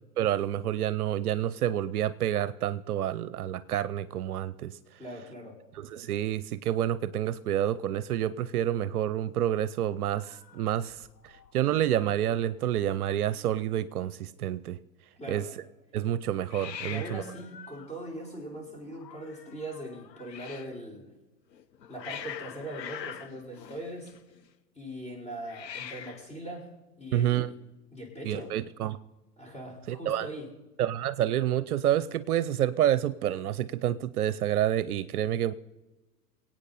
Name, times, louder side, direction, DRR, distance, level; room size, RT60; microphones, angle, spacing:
voice 1, 0.2-4.8 5.8-14.8 15.3-15.4 15.9-17.2 27.1-27.5 28.2-29.0 29.9-30.3 30.8-35.5, right 11 dB, 65° right, 15 dB, 0.7 m, -28 dB
voice 2, 5.0-5.6 15.2-15.5 16.8-21.1 21.9-24.1 24.8-26.7 27.0-27.5 27.9-28.6 29.4-30.5, right 1 dB, 15° left, -2 dB, 5.0 m, -40 dB
Hiss, 10.2-11.5 11.8-12.2 12.5-12.6 12.8-13.5 16.5-20.8 21.5-24.5 25.4-26.3, left 8 dB, 90° left, 1.0 m, -44 dB
24.0 x 8.9 x 4.2 m, 1.1 s
hypercardioid pair, 115°, 48 cm